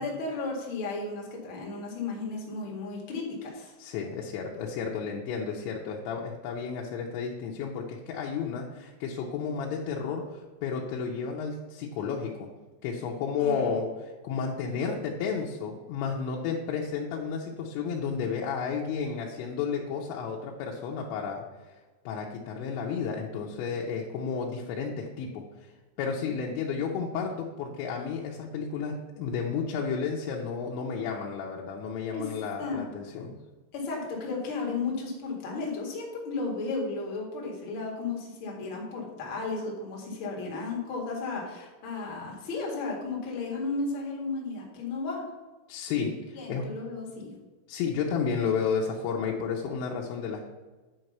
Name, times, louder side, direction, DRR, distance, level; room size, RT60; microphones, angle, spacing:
voice 1, 0.0-3.7 13.4-13.7 32.1-32.3 32.6-32.8 33.7-45.2 46.3-47.3, left 3 dB, 50° left, -1 dB, 1.5 m, -34 dB
voice 2, 3.8-12.5 12.8-21.7 22.1-25.7 26.0-33.3 45.7-46.7 47.7-50.5, left 6 dB, 80° left, -1 dB, 3.1 m, -32 dB
9.7 x 4.6 x 6.6 m, 1.3 s
omnidirectional pair, 5.4 m